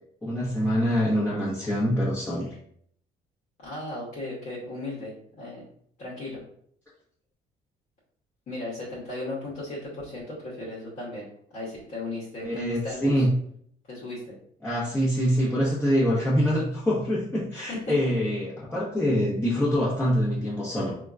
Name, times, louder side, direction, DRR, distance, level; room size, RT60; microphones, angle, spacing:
voice 1, 0.2-2.5 12.4-13.3 14.6-21.0, equal, 10° left, -9 dB, 0.9 m, -25 dB
voice 2, 3.6-5.7 6.0-6.4 8.5-11.3 11.5-13.2 13.9-14.3 17.7-18.1, left 2 dB, 55° left, -8 dB, 1.1 m, -36 dB
3.6 x 2.3 x 2.5 m, 0.65 s
cardioid pair, 110°, 17 cm